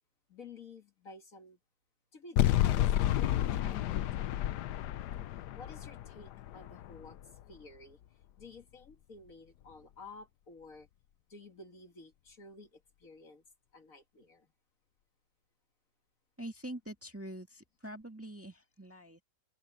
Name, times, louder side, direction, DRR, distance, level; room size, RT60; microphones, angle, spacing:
voice 1, 0.3-1.6 2.1-2.9 3.2-4.0 5.6-7.2 7.5-8.0 8.4-10.9 11.3-13.4 13.7-14.5, left 3 dB, 50° left, 2.2 m, -52 dB
sound 1, 2.4-7.5, left 12 dB, 75° left, 1.2 m, -31 dB
voice 2, 16.4-19.2, right 1 dB, 10° right, 1.7 m, -45 dB
open air
omnidirectional pair, 1.9 m